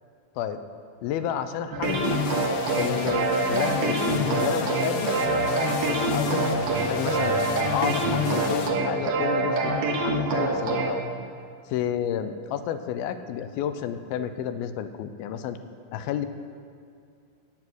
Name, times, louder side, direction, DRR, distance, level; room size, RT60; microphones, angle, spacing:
voice 1, 1.0-2.2 2.8-6.5 6.9-7.3 7.7-11.0 11.7-15.6 15.9-16.3, left 9 dB, 90° left, 10 dB, 2.5 m, -31 dB
sound 1, 1.7-10.9, right 2 dB, 65° right, 3.0 m, -25 dB
sound 2, 1.8-8.7, left 5 dB, 70° left, 2.4 m, -33 dB
12.0 x 8.2 x 9.5 m, 2.3 s
omnidirectional pair, 4.3 m